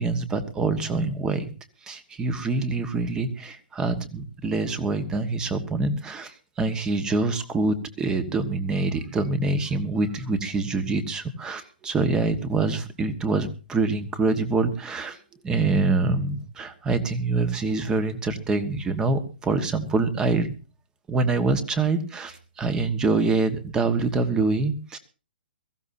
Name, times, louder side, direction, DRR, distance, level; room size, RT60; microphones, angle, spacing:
voice 1, 0.0-1.5 1.8-20.5 21.1-25.0, right 3 dB, 10° right, 12 dB, 1.4 m, -25 dB
22.5 x 14.5 x 2.7 m, 0.33 s
hypercardioid pair, 155°, 6 cm